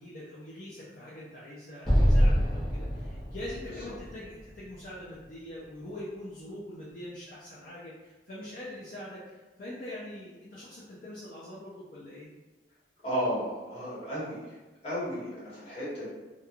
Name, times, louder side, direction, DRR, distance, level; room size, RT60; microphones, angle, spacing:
voice 1, 0.0-12.3, left 1 dB, 50° left, -7 dB, 0.5 m, -43 dB
Explosion, 1.8-5.1, equal, ahead, 0.7 m, -26 dB
voice 2, 13.0-14.5 14.8-16.1, equal, 35° left, -9 dB, 1.2 m, -33 dB
2.9 x 2.3 x 2.4 m, 1.2 s
head